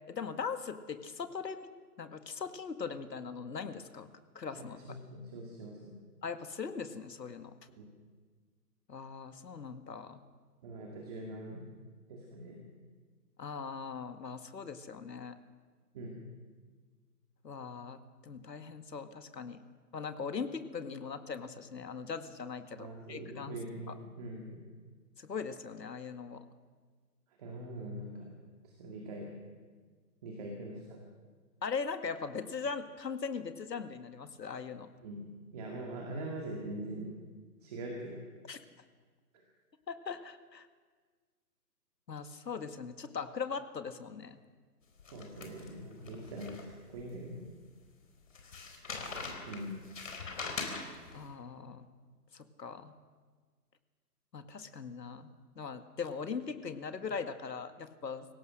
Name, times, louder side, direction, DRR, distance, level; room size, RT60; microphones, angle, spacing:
voice 1, 0.1-1.7 2.0-4.1 4.4-4.8 6.2-7.5 8.9-10.2 13.4-15.4 17.4-19.6 19.9-23.6 23.9-24.0 25.2-26.5 31.6-34.9 38.5-38.6 39.9-40.7 42.1-44.4 51.1-51.9 52.3-52.9 54.3-55.3 55.6-58.3, left 5 dB, 80° left, 9 dB, 2.0 m, -40 dB
voice 2, 4.6-5.9 7.8-7.9 10.6-11.6 12.1-12.6 15.9-16.2 22.8-24.6 27.4-28.3 28.6-29.3 30.2-31.0 35.0-37.1 37.6-38.2 39.3-39.4 45.1-47.4 49.5-49.8, right 1 dB, 25° right, 0 dB, 2.2 m, -43 dB
sound 1, 45.0-47.0 47.5-47.6 48.4-51.2, left 4 dB, 50° left, 4.0 m, -42 dB
26.0 x 16.5 x 6.4 m, 1.5 s
hypercardioid pair, 165°, 49 cm